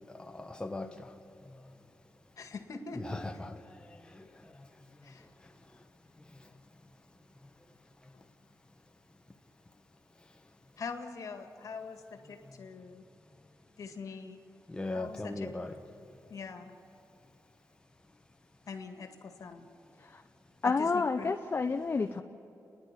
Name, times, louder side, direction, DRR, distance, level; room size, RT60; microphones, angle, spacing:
voice 1, 0.2-1.1 3.0-3.5 4.1-4.2 14.7-15.8, left 2 dB, 15° left, 5 dB, 1.1 m, -38 dB
voice 2, 2.4-3.2 5.0-5.3 8.1-8.2 10.8-13.1 13.8-14.4 14.8-15.5 16.3-16.7 18.7-19.7 20.6-21.3, left 4 dB, 70° left, 6 dB, 1.8 m, -43 dB
voice 3, 20.6-22.2, left 4 dB, 40° left, 6 dB, 0.7 m, -29 dB
30.0 x 10.5 x 9.8 m, 2.9 s
wide cardioid pair, 100°, 6 cm